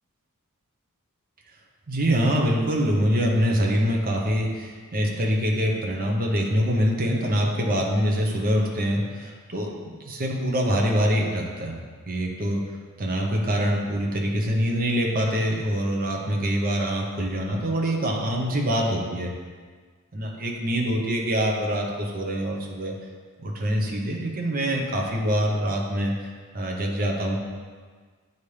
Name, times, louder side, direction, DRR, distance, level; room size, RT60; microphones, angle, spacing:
voice 1, 1.9-11.8 12.1-19.3 20.1-22.9 23.4-27.4, equal, 40° right, 0 dB, 0.8 m, -25 dB
8.4 x 4.1 x 3.3 m, 1.5 s
head